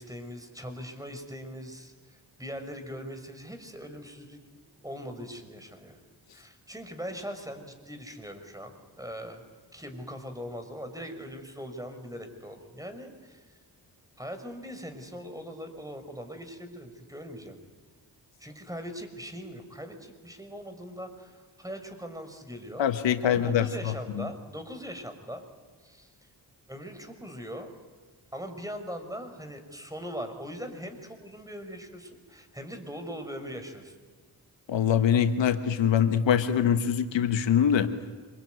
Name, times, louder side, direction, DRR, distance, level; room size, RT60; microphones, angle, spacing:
voice 1, 0.0-6.0 6.3-9.4 9.7-13.4 14.2-17.6 18.4-22.9 23.2-25.4 25.8-26.1 26.7-27.7 28.3-33.9, equal, 10° right, 7 dB, 5.9 m, -41 dB
voice 2, 22.8-23.7 24.2-24.3 34.7-37.9, left 8 dB, 90° left, 9 dB, 1.4 m, -23 dB
26.0 x 22.0 x 9.5 m, 1.5 s
cardioid pair, 45°, 43 cm